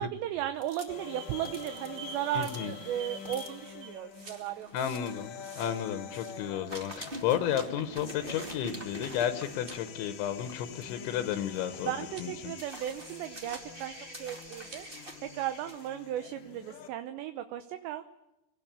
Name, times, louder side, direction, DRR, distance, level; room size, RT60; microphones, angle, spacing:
voice 1, 0.0-4.9 11.8-14.9 15.2-18.0, right 12 dB, 75° right, 9 dB, 2.9 m, -36 dB
sound 1, 0.5-6.4 6.7-15.9, right 1 dB, 25° right, 1.1 m, -46 dB
sound 2, 0.9-16.9, left 8 dB, 60° left, 2.2 m, -47 dB
voice 2, 2.4-2.7 4.7-11.9 12.2-12.5, left 10 dB, 80° left, 9 dB, 3.3 m, -32 dB
sound 3, 4.0-4.6 6.9-7.3 9.5-10.0 12.0-12.3 14.6-14.9, right 5 dB, 45° right, 3.3 m, -52 dB
25.0 x 18.5 x 8.8 m, 0.95 s
omnidirectional pair, 5.6 m